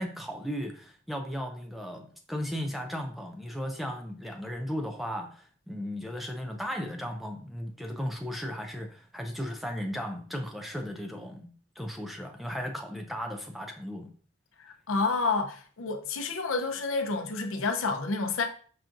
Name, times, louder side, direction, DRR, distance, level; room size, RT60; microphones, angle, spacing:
voice 1, 0.0-14.1, equal, ahead, 0.3 m, -36 dB
voice 2, 14.6-18.5, left 4 dB, 65° left, 0.5 m, -29 dB
5.6 x 2.4 x 2.5 m
head